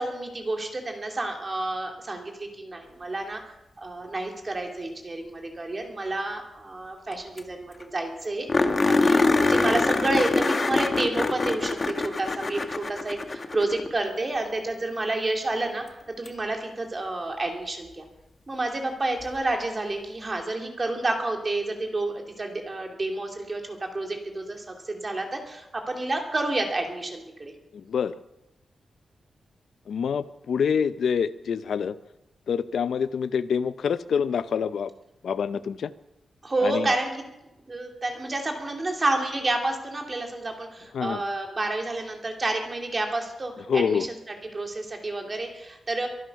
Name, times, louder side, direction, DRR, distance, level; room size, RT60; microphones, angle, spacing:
voice 1, 0.0-3.4 3.8-18.0 18.5-27.5 36.4-37.1 37.7-44.1 44.5-46.1, right 2 dB, 25° right, 2 dB, 2.5 m, -29 dB
sound 1, 7.1-7.2 7.4-7.5 7.8-7.9 8.5-13.9 16.3-16.4 19.2-19.3, left 3 dB, 30° left, 1.1 m, -24 dB
voice 2, 27.7-28.2 29.9-32.0 32.5-34.9 35.2-35.9 36.6-36.9 40.9-41.2 43.7-44.1, left 7 dB, 75° left, 14 dB, 0.7 m, -26 dB
24.0 x 9.3 x 5.9 m, 0.90 s
wide cardioid pair, 160°, 0 cm